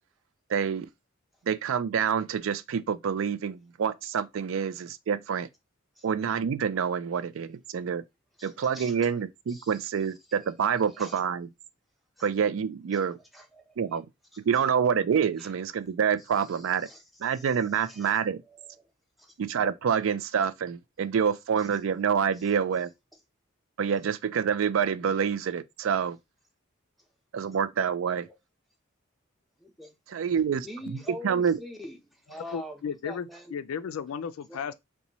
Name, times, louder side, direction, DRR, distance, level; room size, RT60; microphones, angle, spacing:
voice 1, 0.5-0.9 1.5-5.5 6.0-8.0 8.4-11.5 12.2-13.2 13.8-14.1 14.4-16.9 17.2-18.4 19.4-22.9 23.8-26.2 27.3-28.3 30.1-31.0 31.2-31.6, right 7 dB, 70° right, 0.4 m, -27 dB
voice 2, 8.4-9.1 9.5-9.9 10.9-11.2 12.2-12.3 12.9-13.0 13.3-14.0 15.4-15.5 16.4-18.2 18.5-18.9 19.2-19.3 21.6-21.7 22.4-22.5 28.1-28.3 29.6-29.9 30.6-33.6 34.5-34.6, equal, ahead, 0.6 m, -45 dB
voice 3, 32.5-34.7, left 7 dB, 85° left, 0.3 m, -34 dB
4.0 x 2.2 x 2.9 m
head